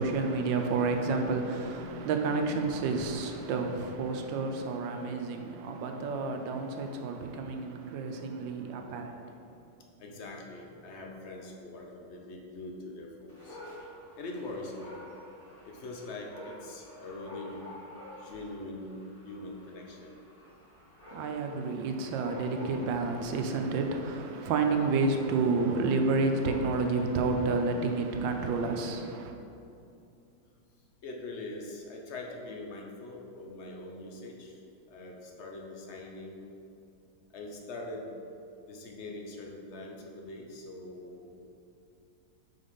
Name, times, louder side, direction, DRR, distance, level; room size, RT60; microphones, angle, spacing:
voice 1, 0.0-9.3 21.1-29.3, right 3 dB, 80° right, 1.3 m, -30 dB
voice 2, 10.0-13.6 14.2-15.0 15.7-17.6 18.2-19.0 19.2-20.2 31.0-34.6 34.9-36.5 37.3-38.1 38.7-41.3, left 2 dB, 65° left, 0.7 m, -42 dB
Dog, 13.3-27.0, left 1 dB, 20° left, 1.4 m, -49 dB
5.2 x 4.2 x 5.5 m
omnidirectional pair, 2.1 m